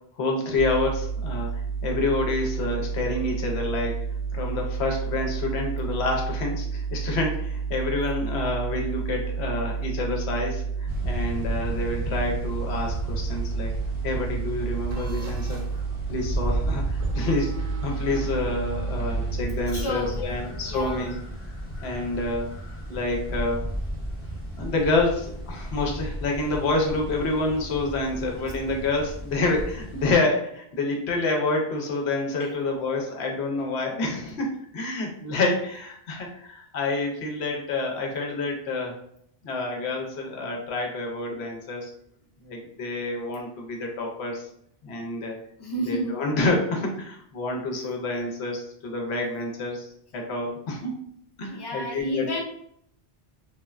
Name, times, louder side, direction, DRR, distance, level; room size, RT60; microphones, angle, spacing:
voice 1, 0.2-1.5 1.8-3.9 4.3-13.7 14.0-15.6 16.1-21.2 21.8-22.5 22.9-23.6 24.6-39.0 39.4-41.9 42.4-44.5 44.8-45.4 45.9-50.9 51.4-52.3, left 2 dB, 85° left, 1 dB, 0.9 m, -28 dB
sound 1, 0.6-19.8, right 5 dB, 60° left, 0.8 m, -30 dB
sound 2, 10.8-30.2, equal, 15° right, 0.7 m, -34 dB
sound 3, 14.9-15.8 16.9-20.0, right 3 dB, 65° right, 0.7 m, -43 dB
voice 2, 19.7-21.1 28.4-28.5 30.0-30.1 32.4-32.5 45.6-46.2 51.5-52.4, left 1 dB, 35° left, -1 dB, 0.4 m, -32 dB
3.3 x 2.1 x 2.4 m, 0.69 s
omnidirectional pair, 1.1 m